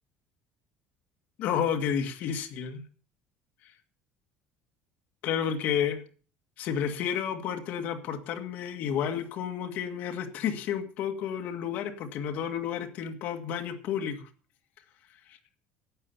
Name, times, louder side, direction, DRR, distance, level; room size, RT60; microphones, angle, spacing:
voice 1, 1.4-2.9 5.2-6.0 6.6-14.3 15.3-15.4, left 8 dB, 55° left, 6 dB, 1.9 m, -31 dB
12.0 x 8.6 x 7.0 m, 0.42 s
cardioid pair, 155°, 3 cm